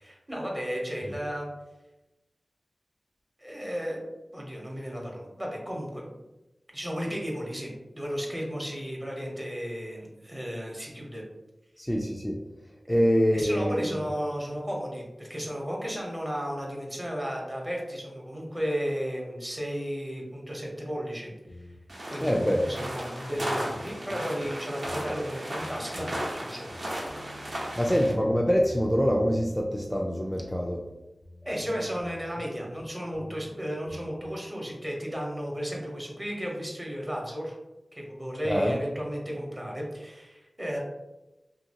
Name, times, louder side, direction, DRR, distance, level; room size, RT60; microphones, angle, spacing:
voice 1, 0.0-1.5 3.4-4.0 4.3-6.1 6.7-11.2 12.9-13.0 13.3-21.3 22.1-26.7 31.4-37.5 37.9-40.8, equal, 20° right, -1 dB, 0.9 m, -34 dB
voice 2, 11.8-12.4 12.9-13.9 22.2-22.6 27.8-30.8 38.4-38.8, equal, 10° left, -2 dB, 0.3 m, -25 dB
sound 1, 21.5-21.9 22.2-22.3 22.6-23.0 23.3-24.5 24.8-25.3 25.6-26.4 26.7-29.8 30.1-32.8 33.1-33.5 33.9-34.3, left 1 dB, 80° left, 0.4 m, -46 dB
sound 2, 21.9-28.1, equal, 70° right, 0.8 m, -35 dB
2.8 x 2.6 x 2.8 m, 1.0 s
wide cardioid pair, 60°, 0 cm